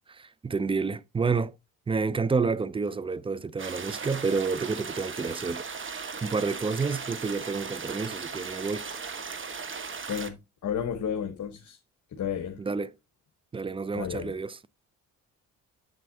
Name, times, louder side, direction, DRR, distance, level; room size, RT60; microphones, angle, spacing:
voice 1, 0.1-1.5 1.9-8.8 12.6-12.9 13.5-14.6, right 4 dB, 15° right, 0.3 m, -29 dB
sound 1, 3.6-10.3, right 5 dB, 35° right, 1.1 m, -37 dB
voice 2, 9.8-10.4 10.6-11.8 12.1-12.6 13.9-14.3, left 8 dB, 55° left, 1.2 m, -32 dB
7.7 x 7.5 x 2.7 m
cardioid pair, 80°, 37 cm